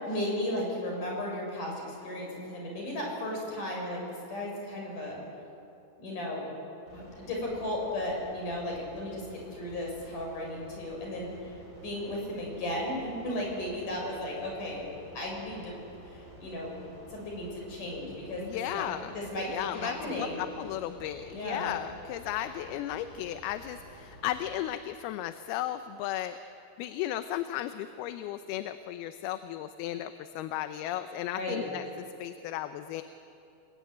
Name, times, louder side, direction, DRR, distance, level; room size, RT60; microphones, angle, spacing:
voice 1, 0.0-5.2 6.0-6.5 6.9-11.6 11.8-14.9 15.1-15.8 16.0-16.8 17.1-18.9 19.1-20.4 21.3-21.7 31.3-31.6, left 1 dB, 55° left, -1 dB, 8.0 m, -35 dB
sound 1, 6.9-24.5, equal, 25° left, 7.5 m, -51 dB
voice 2, 18.4-19.2 19.5-26.4 26.8-31.9 32.2-33.0, left 12 dB, 85° left, 10 dB, 2.7 m, -35 dB
29.5 x 21.0 x 9.5 m, 2.7 s
omnidirectional pair, 4.5 m